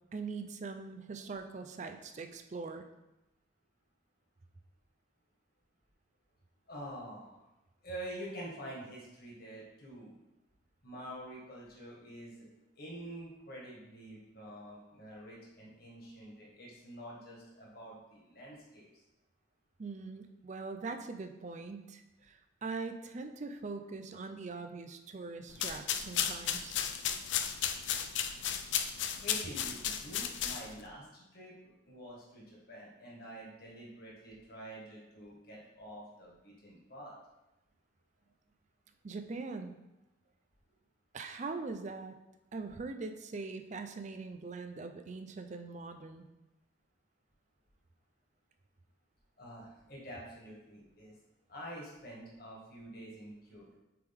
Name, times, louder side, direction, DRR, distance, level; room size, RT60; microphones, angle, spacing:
voice 1, 0.1-2.9 19.8-26.7 39.0-39.7 41.1-42.2 42.5-46.2, right 4 dB, 40° right, 7 dB, 0.4 m, -42 dB
voice 2, 6.7-7.5 7.8-10.2 10.8-12.5 12.7-19.0 29.0-31.5 31.8-37.1 49.4-51.2 51.5-53.8, right 1 dB, 50° left, -4 dB, 1.7 m, -47 dB
sound 1, 25.5-30.9, left 9 dB, 70° left, 0.4 m, -34 dB
7.6 x 3.5 x 3.6 m, 0.96 s
head